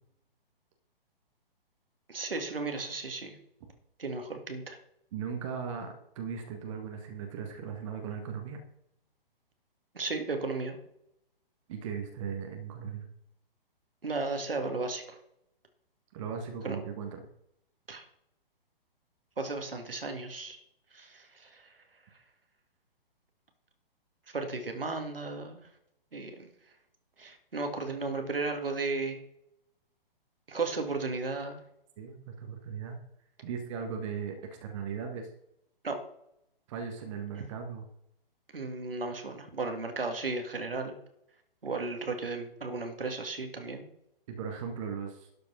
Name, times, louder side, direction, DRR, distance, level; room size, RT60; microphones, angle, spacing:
voice 1, 2.1-3.4 4.0-4.8 9.9-10.8 14.0-15.2 16.6-16.8 17.9-18.0 19.4-20.6 20.9-21.8 24.3-25.6 26.1-26.5 27.2-29.2 30.5-31.6 35.8-36.0 38.5-41.0 41.6-43.9, right 3 dB, 70° right, 5 dB, 2.2 m, -34 dB
voice 2, 5.1-8.6 11.7-13.0 16.1-17.2 32.0-33.0 33.4-35.3 36.7-37.8 44.3-45.3, right 6 dB, 30° right, 4 dB, 1.5 m, -38 dB
12.0 x 5.2 x 5.6 m, 0.79 s
figure-of-eight pair, 130°, 29 cm